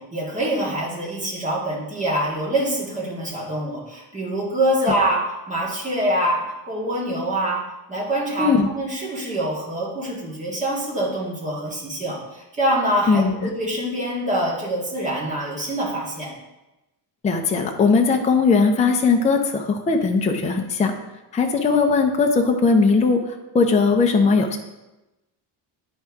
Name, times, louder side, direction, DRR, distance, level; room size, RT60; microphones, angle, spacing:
voice 1, 0.0-7.6 7.9-16.3, right 1 dB, 15° right, -5 dB, 1.8 m, -25 dB
voice 2, 8.4-8.7 13.1-13.5 17.2-20.9 21.3-23.2 23.5-24.6, left 4 dB, 15° left, 3 dB, 0.4 m, -19 dB
11.0 x 4.5 x 3.5 m, 1.0 s
cardioid pair, 175°, 43 cm